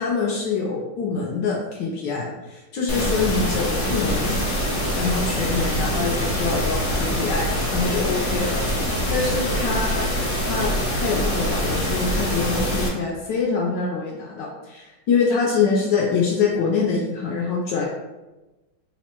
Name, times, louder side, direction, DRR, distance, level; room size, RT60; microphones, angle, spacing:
voice 1, 0.0-4.3 4.9-10.1 10.5-17.9, left 5 dB, 75° left, -2 dB, 1.1 m, -25 dB
sound 1, 2.9-12.9, equal, 55° left, 0.8 m, -24 dB
3.5 x 2.0 x 4.2 m, 1.1 s
omnidirectional pair, 2.3 m